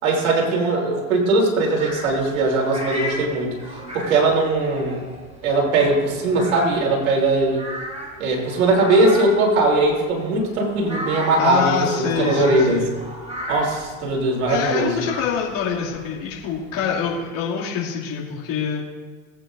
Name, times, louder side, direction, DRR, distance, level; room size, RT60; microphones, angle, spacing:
voice 1, 0.0-5.0 5.4-7.7 8.2-12.9 13.5-15.0, right 2 dB, 85° right, -1 dB, 3.2 m, -20 dB
sound 1, 1.7-17.2, equal, 15° right, 4.0 m, -35 dB
voice 2, 11.4-12.9 14.5-18.8, left 6 dB, 55° left, -6 dB, 2.5 m, -25 dB
19.0 x 9.0 x 2.6 m, 1.4 s
hypercardioid pair, 95°, 41 cm